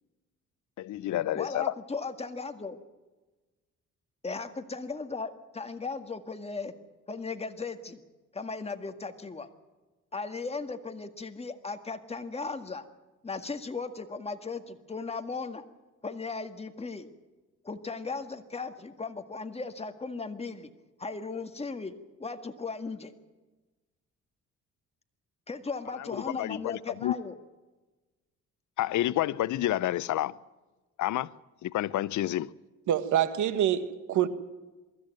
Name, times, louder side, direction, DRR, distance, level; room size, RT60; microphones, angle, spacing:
voice 1, 0.8-1.7 26.0-27.1 28.8-30.4 31.0-31.3 31.6-32.5, left 14 dB, 75° left, 0.7 m, -29 dB
voice 2, 1.4-2.8 4.2-6.7 7.1-8.0 8.3-9.5 10.1-12.8 13.2-15.7 16.0-17.1 17.6-20.7 21.0-23.1 25.5-27.3, left 4 dB, 20° left, 1.9 m, -37 dB
voice 3, 32.9-34.3, right 10 dB, 75° right, 1.7 m, -26 dB
23.5 x 13.5 x 9.2 m
cardioid pair, 90°, 30 cm